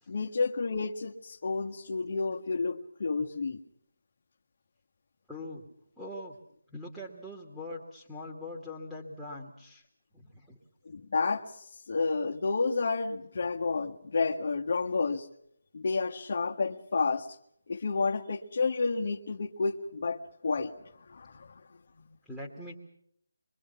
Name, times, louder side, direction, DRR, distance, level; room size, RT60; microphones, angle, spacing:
voice 1, 0.1-3.6 10.8-11.4 11.9-15.3 15.7-17.3 17.7-20.7 21.1-21.6, left 4 dB, 45° left, 4 dB, 1.6 m, -30 dB
voice 2, 5.3-5.6 6.0-6.4 6.7-9.8 10.1-10.6 22.3-22.8, left 1 dB, ahead, -7 dB, 2.4 m, -42 dB
25.5 x 23.5 x 5.8 m, 0.70 s
figure-of-eight pair, 160°, 0 cm